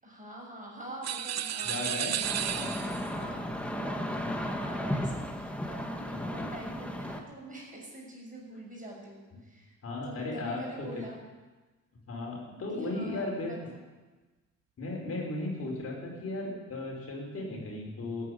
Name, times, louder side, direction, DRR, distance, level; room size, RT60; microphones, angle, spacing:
voice 1, 0.0-2.8 3.1-9.8 10.0-11.2 12.7-13.8, right 1 dB, 25° right, -1 dB, 6.9 m, -45 dB
sound 1, 1.0-3.2, right 10 dB, 60° right, 0.9 m, -33 dB
voice 2, 1.7-2.2 2.5-2.7 6.1-6.2 9.8-10.6 12.1-13.5 14.8-18.3, left 2 dB, 50° left, -2 dB, 5.3 m, -36 dB
sound 2, 2.2-7.2, equal, 5° left, 1.9 m, -34 dB
14.5 x 10.0 x 9.6 m, 1.3 s
cardioid pair, 90°, 30 cm